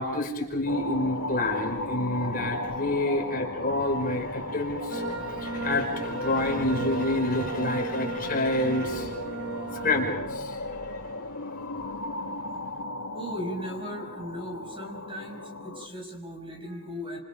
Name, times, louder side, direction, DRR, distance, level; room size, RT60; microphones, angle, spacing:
voice 1, 0.0-9.2 9.7-11.1, left 2 dB, 40° left, 2 dB, 5.2 m, -28 dB
sound 1, 0.7-15.9, left 2 dB, 90° left, 2.1 m, -36 dB
sound 2, 4.9-10.1, right 4 dB, 50° right, 1.3 m, -35 dB
voice 2, 13.1-17.2, equal, 25° right, 3 dB, 5.7 m, -37 dB
30.0 x 29.0 x 5.2 m, 0.84 s
head